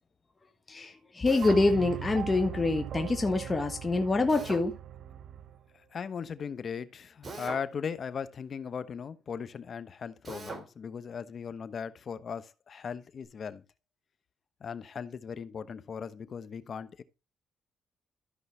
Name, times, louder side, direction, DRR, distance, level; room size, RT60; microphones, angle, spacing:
voice 1, 0.7-4.8, left 3 dB, 25° left, 1.4 m, -26 dB
Drill, 1.3-1.7 4.3-4.7 7.2-7.7 10.2-10.7, right 3 dB, 35° right, 3.3 m, -41 dB
sound 1, 1.4-5.6, right 10 dB, 65° right, 0.6 m, -40 dB
voice 2, 5.9-13.6 14.6-17.0, left 6 dB, 50° left, 1.0 m, -38 dB
13.5 x 5.6 x 3.3 m
cardioid pair, 90°, 0 cm